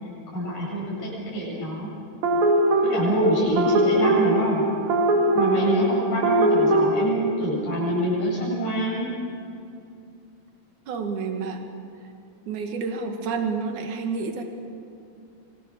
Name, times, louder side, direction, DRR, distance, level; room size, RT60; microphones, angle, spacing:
voice 1, 0.3-1.9 2.9-4.6 5.3-9.1, right 1 dB, 60° left, -6 dB, 9.5 m, -25 dB
sound 1, 2.2-7.1, right 1 dB, 85° right, 3.9 m, -21 dB
voice 2, 10.9-11.6 12.5-14.4, right 5 dB, 60° right, 4 dB, 3.3 m, -29 dB
25.5 x 25.5 x 6.9 m, 2.6 s
omnidirectional pair, 4.0 m